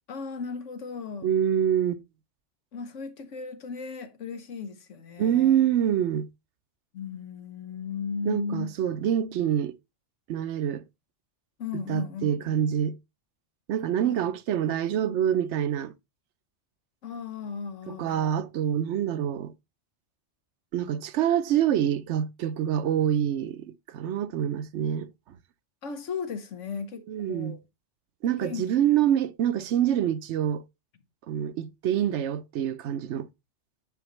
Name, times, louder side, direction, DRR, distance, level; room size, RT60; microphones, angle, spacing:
voice 1, 0.1-1.3 2.7-5.6 6.9-8.7 11.6-12.6 14.0-14.1 17.0-18.3 25.8-27.6 28.4-28.7 29.0-29.1, left 5 dB, 80° left, 1.3 m, -36 dB
voice 2, 1.2-2.0 5.2-6.3 8.3-9.8 10.3-10.8 11.7-13.0 13.7-15.9 17.9-19.5 20.7-25.1 27.1-27.6 28.2-30.6 31.3-33.3, right 10 dB, 70° right, 0.9 m, -26 dB
9.2 x 5.4 x 3.1 m
omnidirectional pair, 1.3 m